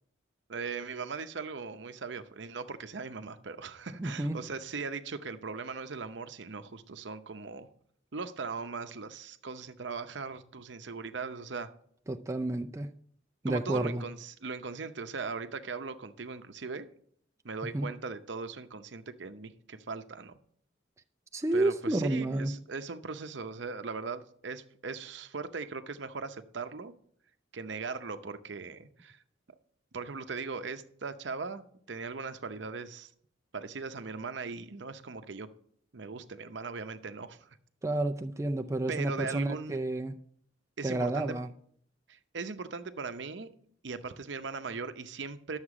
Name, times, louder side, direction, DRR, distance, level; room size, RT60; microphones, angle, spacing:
voice 1, 0.5-7.7 8.1-11.7 13.5-16.9 17.4-20.4 21.5-26.9 27.5-29.2 29.9-33.1 33.5-35.5 35.9-37.5 38.9-39.8 40.8-41.4 42.1-43.5 43.8-45.6, right 4 dB, 65° right, 0.7 m, -39 dB
voice 2, 4.0-4.4 12.1-12.9 13.4-14.0 17.7-17.9 21.3-22.5 37.8-40.2 40.8-41.5, right 2 dB, 15° right, 0.4 m, -30 dB
11.5 x 7.2 x 4.9 m
head